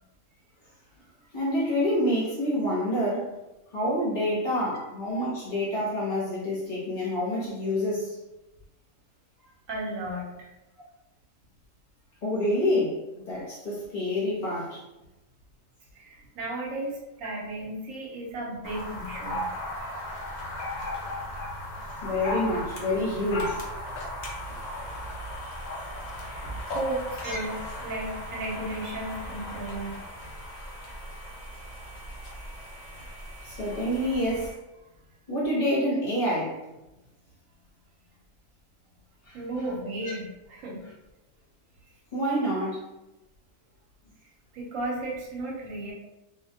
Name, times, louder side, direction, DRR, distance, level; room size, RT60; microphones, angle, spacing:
voice 1, 1.3-3.3 3.7-8.2 10.8-10.9 12.2-13.0 13.2-14.8 22.0-23.6 27.2-27.4 33.4-34.5 35.3-36.6 39.3-39.4 40.0-40.1 42.1-42.8, left 1 dB, 45° left, -7 dB, 0.8 m, -27 dB
voice 2, 9.7-10.5 15.9-19.5 26.2-26.5 26.7-27.5 27.8-30.0 39.3-40.8 44.5-45.9, right 1 dB, 80° right, -2 dB, 1.0 m, -34 dB
sound 1, 18.6-34.5, left 1 dB, 90° left, 0.4 m, -37 dB
2.4 x 2.1 x 2.7 m, 0.98 s
omnidirectional pair, 1.4 m